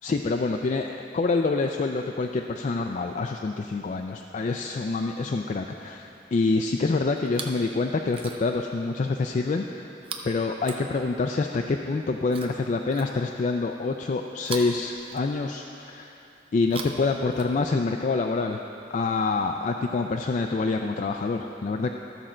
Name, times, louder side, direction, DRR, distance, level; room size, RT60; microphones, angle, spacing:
voice 1, 0.0-9.9 10.2-16.1 16.5-18.6 18.9-21.9, left 3 dB, 45° left, 3 dB, 0.3 m, -26 dB
Chewing mastication, 7.2-7.7 8.0-8.7 10.0-11.4 12.3-13.5 14.4-15.7 16.5-17.9 18.9-19.0, right 4 dB, 30° right, 0.6 m, -41 dB
13.5 x 6.2 x 4.3 m, 2.8 s
head